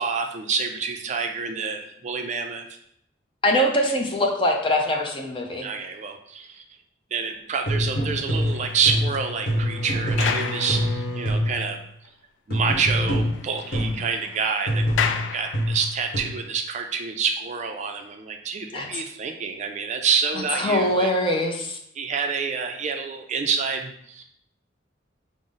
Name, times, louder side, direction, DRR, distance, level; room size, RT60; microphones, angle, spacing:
voice 1, 0.0-2.7 5.6-6.6 7.1-11.8 12.5-14.9 15.3-21.1 22.0-24.2, right 5 dB, 40° right, 4 dB, 0.3 m, -27 dB
voice 2, 3.4-5.7 18.7-19.0 20.6-21.8, left 1 dB, 25° left, 2 dB, 0.5 m, -23 dB
sound 1, 7.7-11.7 12.5-14.1 14.7-16.2, equal, 50° left, 1.1 m, -25 dB
sound 2, 8.0-11.5 12.0-12.1 12.5-12.6 12.9-16.1, left 6 dB, 80° left, 0.4 m, -33 dB
Bowed string instrument, 8.3-11.4, equal, 20° right, 0.8 m, -36 dB
5.0 x 2.0 x 3.8 m, 0.72 s
head